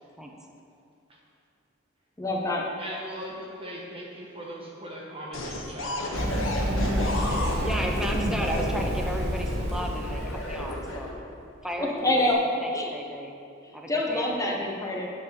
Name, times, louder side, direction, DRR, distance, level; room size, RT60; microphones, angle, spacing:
voice 1, 2.2-2.6 8.1-8.3 11.8-12.4 12.7-12.9 13.9-15.1, left 1 dB, 15° left, -2 dB, 1.0 m, -26 dB
voice 2, 2.8-6.4 6.7-7.3 12.3-12.4, equal, 25° right, -3 dB, 1.3 m, -39 dB
sound 1, 5.3-8.7 9.7-11.3 12.0-12.3, left 1 dB, 85° left, 1.3 m, -33 dB
Run, 6.1-10.9, equal, 55° right, 1.4 m, -29 dB
voice 3, 7.6-11.1 11.6-12.3 12.6-13.3 13.7-14.5, equal, 5° right, 1 dB, 0.8 m, -34 dB
9.1 x 4.9 x 6.8 m, 2.6 s
head